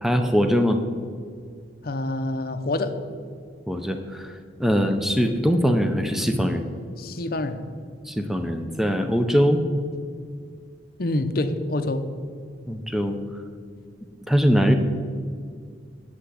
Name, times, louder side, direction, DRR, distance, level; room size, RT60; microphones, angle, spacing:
voice 1, 0.0-0.8 3.7-4.3 4.6-6.6 8.1-9.6 12.7-13.2 14.3-14.7, equal, ahead, 6 dB, 0.7 m, -21 dB
voice 2, 1.8-2.9 7.0-7.7 11.0-12.1, left 2 dB, 50° left, 8 dB, 0.7 m, -26 dB
8.0 x 7.7 x 8.3 m, 2.1 s
head